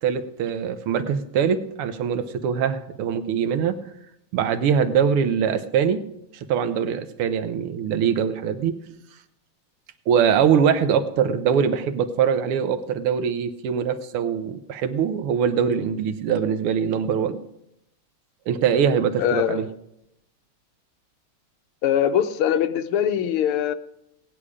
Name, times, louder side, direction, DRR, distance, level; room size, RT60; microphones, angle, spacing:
voice 1, 0.0-3.8 4.3-6.0 6.5-8.7 10.1-17.4 18.5-19.7, right 7 dB, 90° right, 10 dB, 1.8 m, -22 dB
voice 2, 19.2-19.6 21.8-23.7, left 9 dB, 85° left, 9 dB, 1.7 m, -22 dB
17.5 x 9.8 x 4.9 m, 0.81 s
omnidirectional pair, 2.4 m